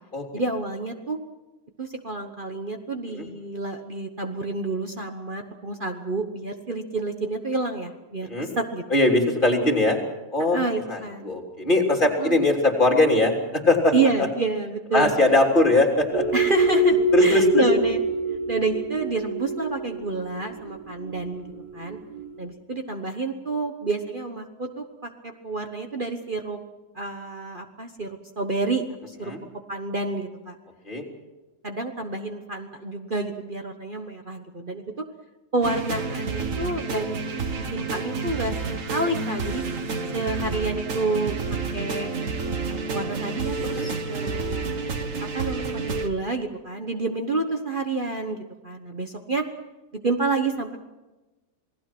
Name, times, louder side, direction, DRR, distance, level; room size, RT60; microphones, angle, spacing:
voice 1, 0.3-1.2 1.8-8.8 10.5-11.3 12.2-12.4 13.9-15.1 16.3-18.0 18.5-21.5 21.7-22.0 22.4-26.6 26.9-29.3 29.7-30.5 31.6-35.0 35.5-37.2 37.5-39.6 40.1-41.4 41.7-42.1 42.7-44.7 45.3-48.4 48.6-49.4 50.0-50.8, right 3 dB, 35° right, 5 dB, 1.3 m, -29 dB
voice 2, 8.9-10.0 10.3-10.6 10.9-13.9 14.9-16.2 17.1-17.6 29.3-29.4 30.9-31.0 43.7-43.9, left 2 dB, 30° left, 1 dB, 3.6 m, -20 dB
sound 1, 16.1-22.3, right 2 dB, 75° right, 2.7 m, -25 dB
sound 2, 35.6-46.1, right 4 dB, 55° right, 1.8 m, -29 dB
28.0 x 19.0 x 6.1 m, 1.1 s
omnidirectional pair, 1.6 m